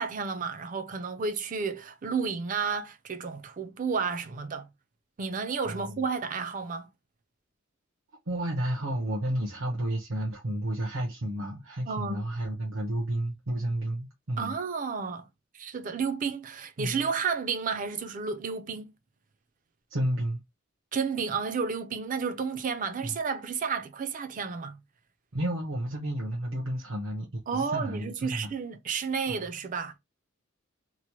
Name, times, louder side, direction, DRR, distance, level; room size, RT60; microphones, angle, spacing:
voice 1, 0.0-4.7 5.2-6.9 11.9-12.2 14.4-15.3 15.5-18.9 20.9-24.8 27.5-29.9, right 5 dB, 40° right, 0.4 m, -31 dB
voice 2, 5.6-6.0 8.3-14.6 16.8-17.1 19.9-20.4 23.0-23.2 25.3-28.5 29.3-29.4, right 1 dB, 75° right, 0.8 m, -31 dB
3.0 x 2.1 x 2.9 m
head